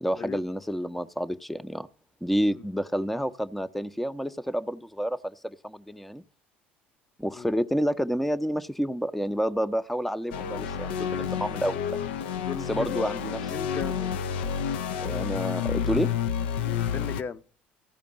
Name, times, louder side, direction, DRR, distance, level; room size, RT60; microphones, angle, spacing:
voice 1, 0.0-1.9 2.2-6.2 7.2-12.0 12.7-13.5 15.0-16.1, equal, ahead, 0.6 m, -29 dB
sound 1, 10.3-17.2, left 8 dB, 70° left, 0.4 m, -30 dB
voice 2, 12.4-13.0 13.5-14.1 16.6-17.4, left 7 dB, 35° left, 0.7 m, -36 dB
15.0 x 5.1 x 7.6 m
figure-of-eight pair, 60°, 6 cm